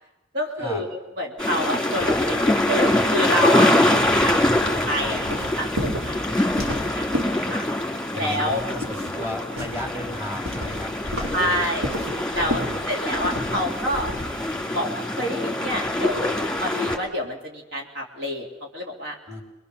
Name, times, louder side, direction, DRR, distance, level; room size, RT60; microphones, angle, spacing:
voice 1, 0.3-0.9 1.2-3.7 4.0-4.4 4.6-6.5 6.9-7.7 8.1-8.6 11.3-11.9 12.3-14.1 14.7-19.2, equal, 65° right, 1 dB, 2.9 m, -28 dB
sound 1, 1.4-17.0, left 1 dB, 5° left, 2.7 m, -24 dB
voice 2, 3.7-4.5 8.1-11.7 12.4-12.8 19.3-19.4, left 1 dB, 15° right, 1 dB, 3.6 m, -35 dB
sound 2, 4.6-7.9 8.2-14.5, equal, 80° right, 4.0 m, -33 dB
25.5 x 21.5 x 6.8 m, 1.1 s
head